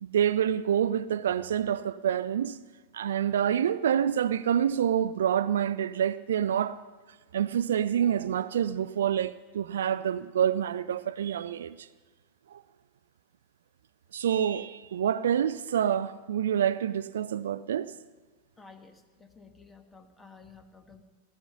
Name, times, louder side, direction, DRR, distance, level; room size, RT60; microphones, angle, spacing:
voice 1, 0.0-2.6 2.9-6.8 7.3-11.9 12.5-12.6 14.1-17.9, right 9 dB, 65° right, 0.4 m, -27 dB
voice 2, 18.6-21.0, left 4 dB, 10° left, 1.5 m, -53 dB
16.0 x 13.0 x 5.9 m
figure-of-eight pair, 90°, 0 cm